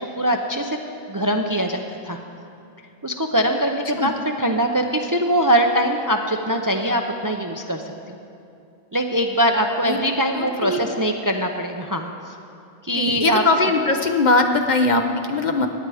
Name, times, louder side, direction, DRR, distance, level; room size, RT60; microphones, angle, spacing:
voice 1, 0.2-0.8 1.1-2.2 3.0-4.1 4.4-7.8 8.1-8.2 8.9-12.1 12.8-13.4, equal, 25° right, 4 dB, 0.5 m, -22 dB
voice 2, 10.3-10.8 12.9-15.7, left 3 dB, 50° left, 6 dB, 0.9 m, -20 dB
17.0 x 10.5 x 4.9 m, 2.5 s
omnidirectional pair, 1.0 m